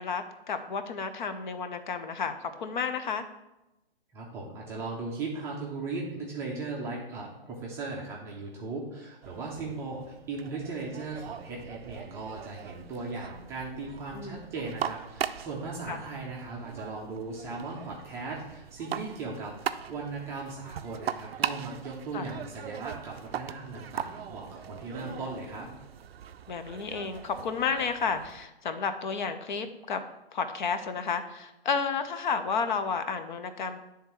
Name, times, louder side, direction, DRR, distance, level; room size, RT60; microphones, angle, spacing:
voice 1, 0.0-3.3 14.1-14.4 15.9-16.0 22.1-22.3 25.0-25.3 26.5-30.0 30.3-33.8, left 5 dB, 50° left, 9 dB, 0.6 m, -32 dB
voice 2, 4.1-25.7, right 3 dB, 10° right, -3 dB, 0.5 m, -38 dB
sound 1, 9.2-28.5, right 9 dB, 75° right, 0.4 m, -40 dB
9.3 x 3.5 x 4.4 m, 0.94 s
hypercardioid pair, 135°, 30 cm